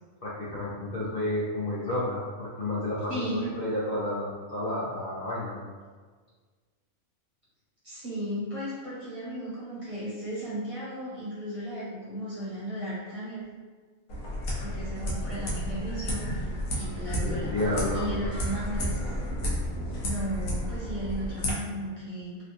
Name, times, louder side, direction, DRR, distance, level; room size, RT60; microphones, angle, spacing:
voice 1, 0.2-5.6 17.2-18.0, left 1 dB, 55° left, -9 dB, 0.7 m, -31 dB
voice 2, 3.1-3.5 7.8-13.4 14.6-16.5 16.7-17.5 17.9-19.0 20.0-22.4, equal, 25° right, -10 dB, 1.1 m, -35 dB
sound 1, 14.1-21.5, equal, 85° left, 1.2 m, -32 dB
3.3 x 2.6 x 2.5 m, 1.5 s
omnidirectional pair, 1.5 m